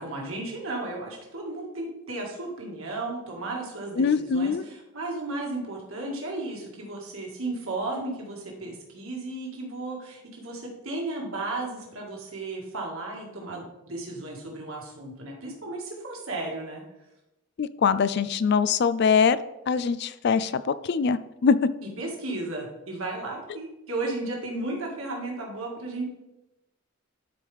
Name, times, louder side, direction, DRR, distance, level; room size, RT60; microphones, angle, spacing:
voice 1, 0.0-16.8 22.0-26.0, right 2 dB, 85° right, -1 dB, 2.0 m, -34 dB
voice 2, 4.0-4.6 17.6-19.4 19.7-21.7, left 6 dB, 55° left, 15 dB, 0.4 m, -23 dB
11.5 x 4.7 x 3.5 m, 0.95 s
head